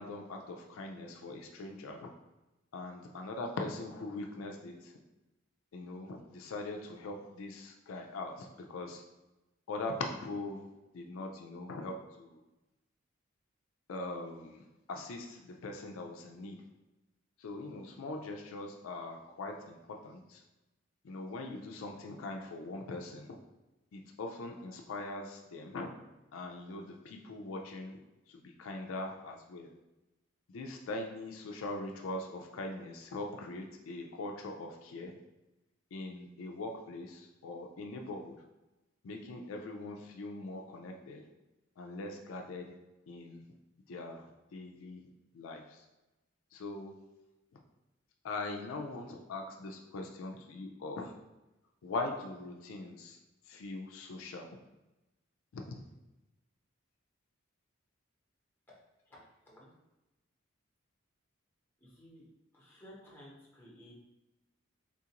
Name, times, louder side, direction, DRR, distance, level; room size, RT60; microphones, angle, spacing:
voice 1, 0.0-2.1 2.7-4.9 5.7-9.0 9.7-12.4 13.9-16.6 17.4-20.4 21.0-23.4 23.9-25.9 26.3-28.0 28.3-29.7 30.5-35.1 35.9-38.4 39.0-41.2 41.8-42.8 43.1-43.5 43.9-45.0 45.3-45.8 46.5-47.3 48.2-51.1 51.8-53.2 53.5-54.5 55.5-55.8, left 2 dB, 75° left, 3 dB, 0.4 m, -41 dB
voice 2, 59.1-59.7 61.8-62.2 62.5-63.9, equal, 10° left, -6 dB, 0.9 m, -55 dB
3.7 x 2.4 x 2.8 m, 1.0 s
head